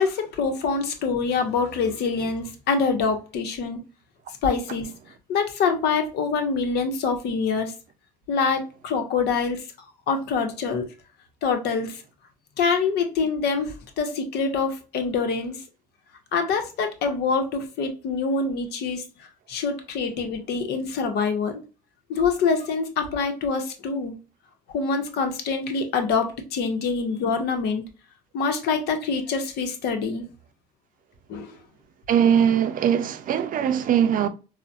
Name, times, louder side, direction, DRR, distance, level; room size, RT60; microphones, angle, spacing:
voice 1, 0.0-3.8 4.4-4.9 5.3-7.7 8.3-9.6 10.1-10.9 11.4-12.0 12.6-15.6 16.3-21.6 22.1-24.1 24.7-27.8 28.3-30.2 31.3-31.6, left 5 dB, 70° left, 0.9 m, -25 dB
voice 2, 32.1-34.3, right 9 dB, 50° right, 0.5 m, -21 dB
3.9 x 2.1 x 2.5 m
supercardioid pair, 80°, 17 cm